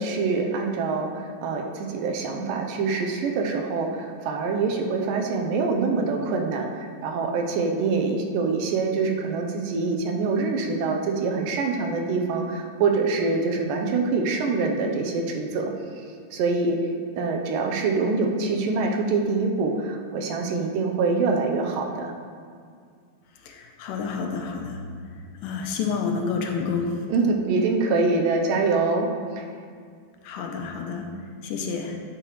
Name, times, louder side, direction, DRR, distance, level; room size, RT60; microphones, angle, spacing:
voice 1, 0.0-15.7 16.3-16.8 17.2-22.1 27.1-29.1 29.4-29.5, right 4 dB, 85° right, 2 dB, 2.5 m, -25 dB
voice 2, 23.4-24.8 25.1-27.0 30.2-31.1 31.4-32.0, left 5 dB, 80° left, 2 dB, 2.5 m, -29 dB
9.8 x 8.9 x 3.2 m, 2.2 s
omnidirectional pair, 3.9 m